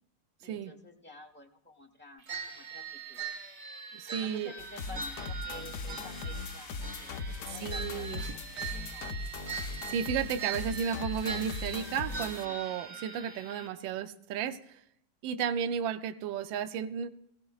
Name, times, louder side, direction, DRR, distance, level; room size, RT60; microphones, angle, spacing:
voice 1, 0.4-2.2 2.5-3.2 4.1-9.1, left 2 dB, 10° left, 2 dB, 0.5 m, -51 dB
sound 1, 2.3-13.7, right 5 dB, 40° right, 1.2 m, -41 dB
voice 2, 3.9-4.5 7.5-8.8 9.9-14.8 15.2-17.1, right 8 dB, 75° right, 8 dB, 1.4 m, -34 dB
sound 2, 4.6-12.5, left 4 dB, 75° left, 0.7 m, -39 dB
22.0 x 15.5 x 2.4 m, 0.74 s
omnidirectional pair, 2.3 m